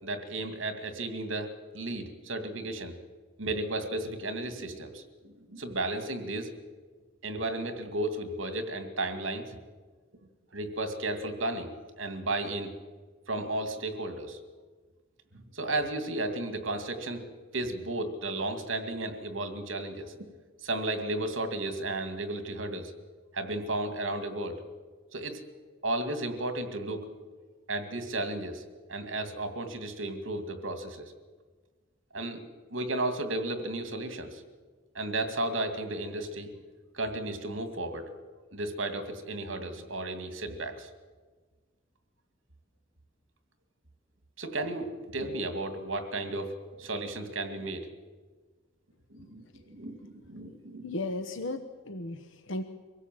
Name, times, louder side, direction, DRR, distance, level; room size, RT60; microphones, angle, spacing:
voice 1, 0.0-2.9 3.4-6.5 7.2-9.6 10.5-11.7 12.0-12.7 13.3-14.4 15.3-17.3 17.5-20.3 20.6-22.9 23.3-24.6 25.1-25.4 25.8-27.1 27.7-28.6 28.9-31.1 32.1-32.4 32.7-34.4 34.9-36.5 36.9-38.1 38.5-40.9 44.4-47.9 49.1-51.0, right 2 dB, 80° right, 8 dB, 2.3 m, -34 dB
voice 2, 50.8-52.6, left 2 dB, 75° left, 8 dB, 1.1 m, -35 dB
24.5 x 16.5 x 7.7 m, 1.4 s
head